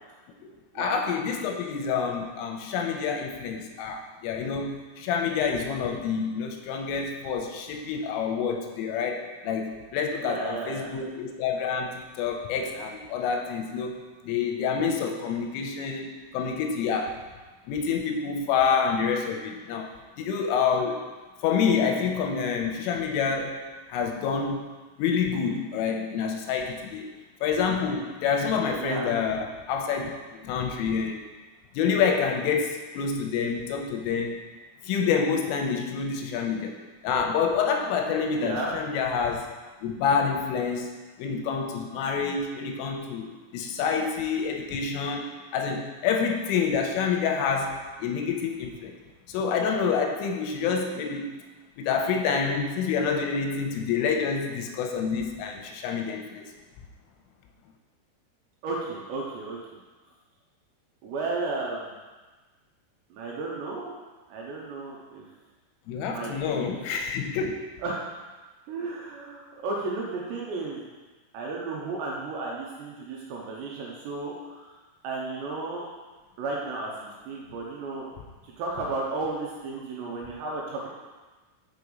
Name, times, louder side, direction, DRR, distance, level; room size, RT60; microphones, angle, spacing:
voice 1, 0.8-14.0 14.2-16.1 16.3-17.2 17.7-19.9 20.2-21.0 21.4-23.6 23.9-24.7 25.0-27.1 27.4-31.2 31.8-34.4 34.8-36.8 37.0-39.5 39.8-48.9 49.3-51.4 51.8-56.5 65.9-67.7, left 6 dB, 90° left, 3 dB, 3.2 m, -27 dB
voice 2, 10.2-10.9 28.8-29.1 38.4-38.7 58.6-59.6 61.0-61.9 63.1-63.9 64.3-65.2 66.0-66.8 67.8-68.1 68.7-70.9 71.3-74.7 75.0-75.9 76.4-78.1 78.4-80.9, right 3 dB, 75° right, -3 dB, 2.7 m, -33 dB
6.6 x 5.8 x 5.3 m, 1.3 s
omnidirectional pair, 5.8 m